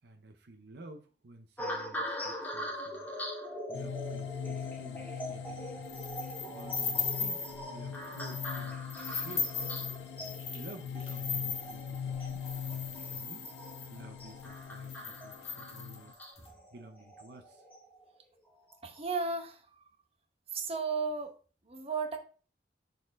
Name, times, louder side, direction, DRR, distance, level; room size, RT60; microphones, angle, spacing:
voice 1, 0.0-3.1 3.7-5.9 6.5-9.9 10.5-13.5 13.9-16.2 16.7-17.6, right 2 dB, 65° right, 5 dB, 0.7 m, -52 dB
sound 1, 1.6-18.0 18.7-19.0, equal, 10° left, 1.1 m, -43 dB
sound 2, 3.7-16.1, left 7 dB, 80° left, 0.5 m, -42 dB
sound 3, 5.9-7.6 8.0-8.6 8.9-13.9 14.5-14.6 14.8-16.4, left 6 dB, 35° left, 1.4 m, -37 dB
voice 2, 18.8-19.6 20.5-21.3 21.7-22.2, right 4 dB, 35° right, 5 dB, 0.9 m, -34 dB
6.5 x 4.2 x 3.5 m, 0.38 s
head